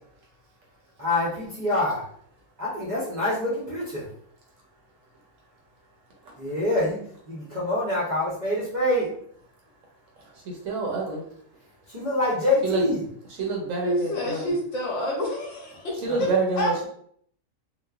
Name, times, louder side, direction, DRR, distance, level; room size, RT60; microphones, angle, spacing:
voice 1, 1.0-2.0 2.6-4.1 6.4-7.0 7.3-9.1 11.9-13.0 16.1-16.2, left 1 dB, 40° right, -8 dB, 0.6 m, -25 dB
voice 2, 10.3-11.2 12.6-12.8 13.4-14.5 16.0-16.9, right 4 dB, 65° right, -2 dB, 1.0 m, -27 dB
voice 3, 13.8-16.3 16.6-16.7, left 1 dB, 60° left, -3 dB, 1.0 m, -28 dB
2.9 x 2.1 x 2.3 m, 0.63 s
omnidirectional pair, 1.6 m